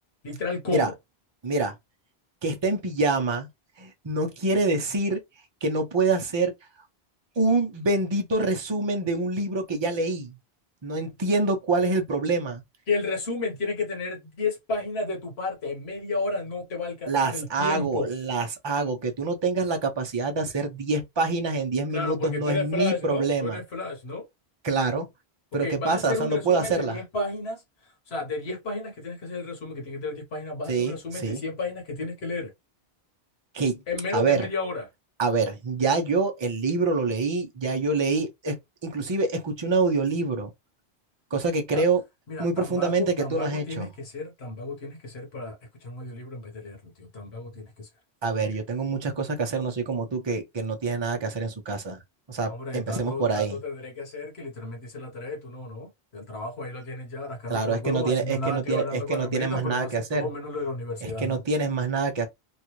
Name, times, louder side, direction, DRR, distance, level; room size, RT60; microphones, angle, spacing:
voice 1, 0.2-0.9 12.9-18.1 21.9-24.2 25.6-32.5 33.9-34.9 41.7-41.8 42.3-47.9 48.4-48.6 52.5-61.4, left 3 dB, 70° left, 1.4 m, -32 dB
voice 2, 1.4-1.7 2.4-3.5 3.8-5.2 5.6-6.5 7.4-10.4 10.8-12.6 17.1-23.6 24.6-25.1 25.5-27.0 30.7-31.4 33.5-33.8 34.1-34.5 35.2-40.5 41.3-42.0 42.4-43.9 48.2-52.0 52.3-53.6 57.5-60.3 61.0-62.3, right 3 dB, 30° right, 0.6 m, -26 dB
3.2 x 2.4 x 3.0 m
omnidirectional pair, 1.1 m